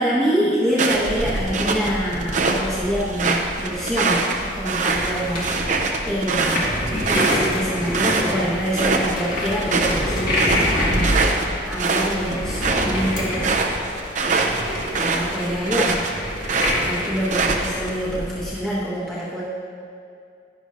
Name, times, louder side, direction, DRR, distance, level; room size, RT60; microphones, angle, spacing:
voice 1, 0.0-5.4 6.0-6.7 7.1-11.2 11.7-13.9 14.2-14.6 14.9-16.1 16.8-19.4, equal, 5° left, -10 dB, 1.3 m, -26 dB
sound 1, 0.7-2.6 3.0-8.3 8.6-9.1 9.4-16.1 16.4-17.9, right 3 dB, 45° right, 0.7 m, -23 dB
sound 2, 0.9-18.5, left 1 dB, 50° left, 1.9 m, -28 dB
11.0 x 11.0 x 2.6 m, 2.4 s
head